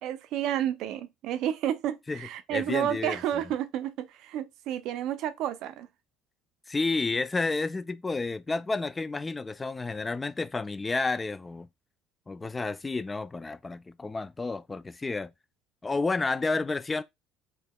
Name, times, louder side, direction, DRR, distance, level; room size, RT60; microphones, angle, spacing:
voice 1, 0.0-5.9, right 11 dB, 65° right, 0.5 m, -31 dB
voice 2, 2.5-3.2 6.7-11.7 12.3-15.3 15.8-17.0, left 3 dB, 20° left, 0.3 m, -30 dB
3.5 x 2.9 x 2.2 m
hypercardioid pair, 70°, 0 cm